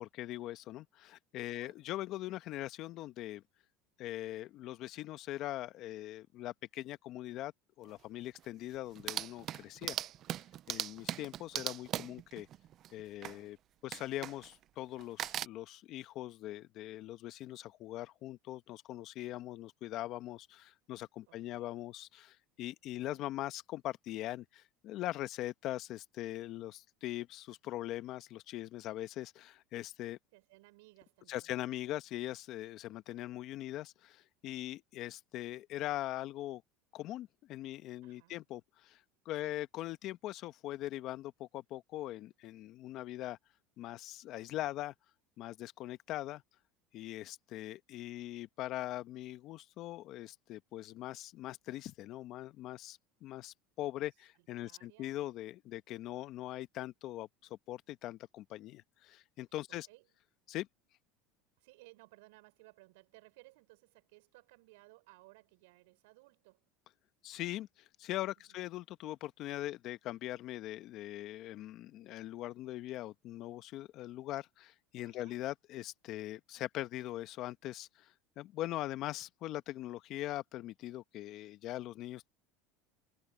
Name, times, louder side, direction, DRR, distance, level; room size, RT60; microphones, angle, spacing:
voice 1, 0.0-3.4 4.0-7.5 7.8-10.0 10.7-12.5 12.9-13.6 13.8-30.2 31.3-36.6 36.9-43.4 43.8-44.9 45.4-46.4 46.9-59.9 60.5-60.7 67.2-82.3, left 15 dB, 55° left, 1.3 m, -41 dB
voice 2, 1.5-1.8 21.3-21.8 23.1-23.2 30.3-31.5 38.0-38.4 39.4-39.6 54.4-55.2 59.7-60.1 61.6-66.7 68.5-68.7 75.0-75.4, right 24 dB, 80° right, 6.7 m, -61 dB
sound 1, 7.9-8.0 8.3-8.4 8.7-13.4 13.9-14.6 15.0-15.5, right 12 dB, 45° right, 0.5 m, -40 dB
supercardioid pair, 110°, 0 cm